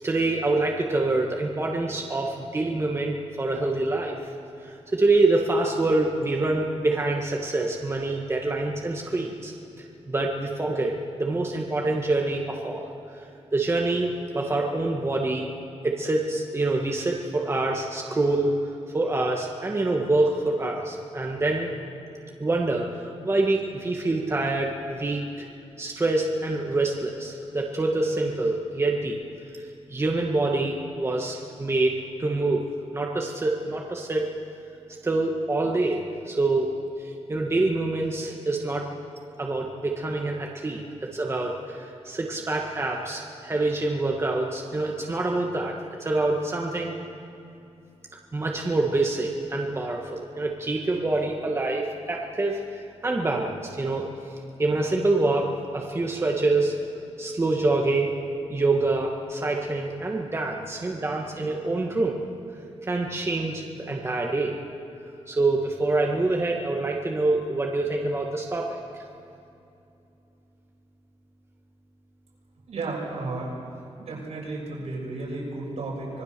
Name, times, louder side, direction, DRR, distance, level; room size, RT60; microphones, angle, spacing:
voice 1, 0.0-4.1 4.6-9.5 10.1-12.9 13.5-15.5 15.8-18.5 18.9-21.7 22.4-25.5 25.8-29.2 29.9-32.6 32.9-34.3 35.0-36.7 37.0-38.9 39.4-45.7 46.0-46.9 48.3-52.6 53.0-54.1 54.6-55.5 55.7-56.7 57.2-58.1 58.5-62.2 62.8-64.6 65.3-68.8, right 2 dB, 25° right, 0 dB, 1.7 m, -26 dB
voice 2, 72.7-73.5 74.0-76.2, right 2 dB, 80° right, -3 dB, 6.7 m, -33 dB
25.5 x 19.0 x 6.9 m, 2.7 s
wide cardioid pair, 130°, 11 cm